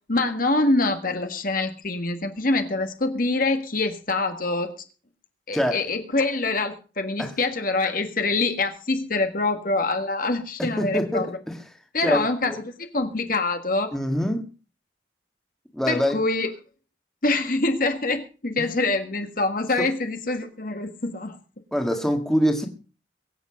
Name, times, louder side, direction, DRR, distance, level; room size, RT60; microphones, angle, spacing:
voice 1, 0.1-4.7 5.5-11.3 11.9-12.5 12.8-13.9 15.9-16.5 17.2-21.4, left 2 dB, 45° left, 7 dB, 1.6 m, -25 dB
voice 2, 10.6-11.6 12.0-12.6 13.9-14.4 15.7-16.2 18.6-18.7 19.8-19.9 21.7-22.7, equal, ahead, 4 dB, 1.9 m, -24 dB
22.5 x 8.3 x 5.1 m, 0.36 s
head